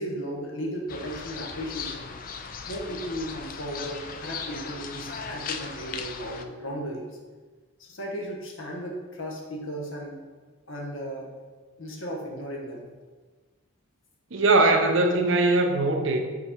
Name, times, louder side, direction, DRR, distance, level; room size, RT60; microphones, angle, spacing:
voice 1, 0.0-2.2 2.7-7.1 7.8-10.2 10.7-11.3 11.8-12.9, equal, 65° left, 0 dB, 1.1 m, -35 dB
sound 1, 0.9-6.4, left 6 dB, 40° left, 0.3 m, -37 dB
voice 2, 14.3-16.2, right 2 dB, 60° right, 5 dB, 0.7 m, -21 dB
4.9 x 4.2 x 5.0 m, 1.4 s
head